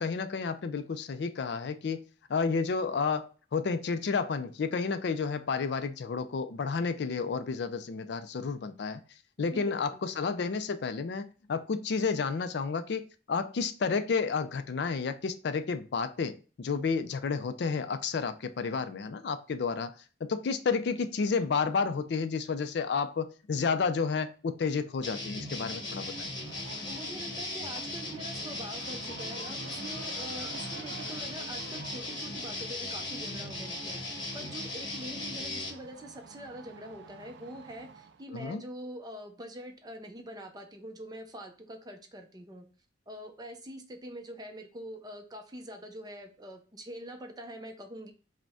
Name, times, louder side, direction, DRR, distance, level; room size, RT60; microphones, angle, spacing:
voice 1, 0.0-2.0 2.3-9.0 9.4-20.0 20.2-26.3 38.3-38.6, left 5 dB, 65° left, 0.4 m, -31 dB
voice 2, 9.5-10.0 26.8-42.7 43.1-48.1, right 1 dB, 20° right, 0.6 m, -44 dB
sound 1, 25.0-35.7, left 2 dB, 25° left, 1.1 m, -38 dB
sound 2, 25.4-38.3, right 5 dB, 65° right, 0.4 m, -50 dB
4.9 x 2.2 x 3.5 m
head